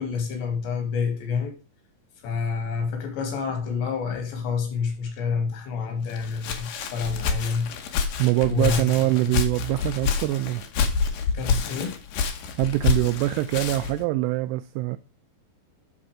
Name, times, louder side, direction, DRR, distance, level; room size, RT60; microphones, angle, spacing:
voice 1, 0.0-1.6 2.2-7.7 8.4-8.8 9.2-9.3 11.3-12.0, left 5 dB, 85° left, 4.5 m, -28 dB
Walk footsteps, 6.1-14.0, left 5 dB, 65° left, 2.4 m, -28 dB
voice 2, 8.2-10.6 12.6-15.0, right 17 dB, 85° right, 2.6 m, -24 dB
12.5 x 4.3 x 5.0 m
omnidirectional pair, 4.9 m